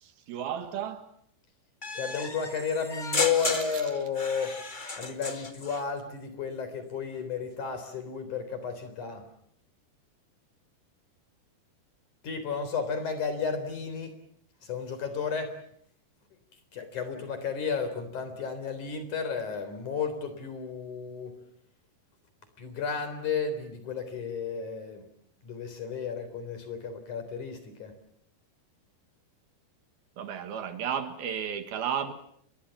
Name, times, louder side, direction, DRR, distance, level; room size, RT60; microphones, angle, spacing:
voice 1, 0.0-1.1 30.2-32.1, right 8 dB, 70° right, 3.3 m, -33 dB
sound 1, 1.8-5.8, left 3 dB, 70° left, 0.4 m, -34 dB
voice 2, 1.9-4.5 5.0-9.2 12.2-14.2 14.6-15.6 16.7-21.3 22.6-25.1 25.4-27.9, left 6 dB, 50° left, 5.0 m, -32 dB
29.5 x 22.5 x 7.2 m
omnidirectional pair, 4.7 m